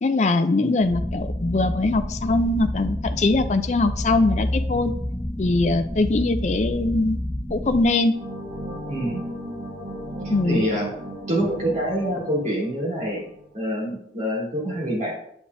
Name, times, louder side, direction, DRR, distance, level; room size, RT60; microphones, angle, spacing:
voice 1, 0.0-5.0 5.4-7.2 7.5-8.1 10.3-10.7, left 2 dB, 40° left, 9 dB, 0.4 m, -22 dB
sound 1, 0.8-7.9, left 1 dB, 15° left, 0.8 m, -29 dB
sound 2, 8.1-13.5, right 1 dB, 90° right, 1.9 m, -35 dB
voice 2, 8.9-9.2 10.4-10.9 11.3-13.2 13.5-15.1, equal, 40° right, -5 dB, 2.5 m, -26 dB
8.3 x 5.1 x 2.6 m, 0.71 s
head